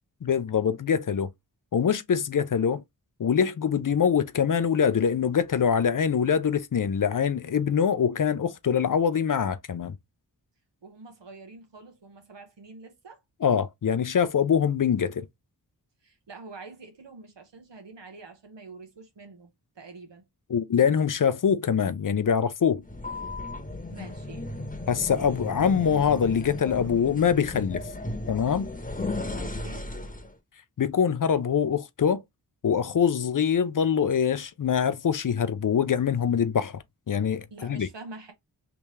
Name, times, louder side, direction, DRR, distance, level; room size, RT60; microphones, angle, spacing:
voice 1, 0.2-1.3 1.7-2.8 3.2-10.0 13.4-15.3 20.5-22.8 24.9-27.8 28.3-28.7 30.8-32.2 32.6-37.9, left 7 dB, 50° left, 0.5 m, -24 dB
voice 2, 10.8-13.2 16.0-19.5 19.7-20.2 23.9-24.5 29.3-29.9 37.5-38.3, right 3 dB, 80° right, 1.2 m, -46 dB
sound 1, 22.8-30.3, left 2 dB, 20° left, 1.0 m, -35 dB
3.4 x 2.8 x 3.2 m
cardioid pair, 45°, 42 cm